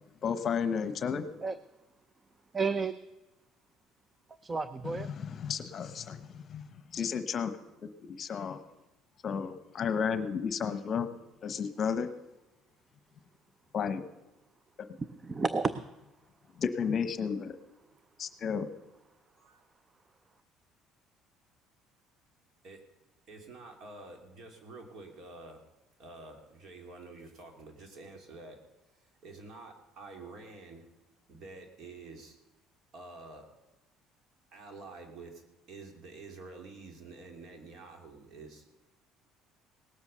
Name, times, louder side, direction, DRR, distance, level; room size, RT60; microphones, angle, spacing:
voice 1, 0.2-1.3 4.8-6.6 6.9-8.6 9.2-11.1 11.4-12.1 13.7-14.0 16.6-17.6 18.2-18.7, left 6 dB, 40° left, 11 dB, 1.1 m, -33 dB
voice 2, 2.5-2.9 4.4-5.1 15.0-15.8, right 4 dB, 25° right, 14 dB, 0.5 m, -31 dB
voice 3, 23.3-25.6 26.0-28.6 29.2-30.9 31.3-32.4 32.9-33.5 34.5-35.4 35.7-38.7, right 3 dB, 55° right, 4 dB, 2.9 m, -48 dB
18.5 x 8.1 x 6.9 m, 1.0 s
cardioid pair, 125°, 0 cm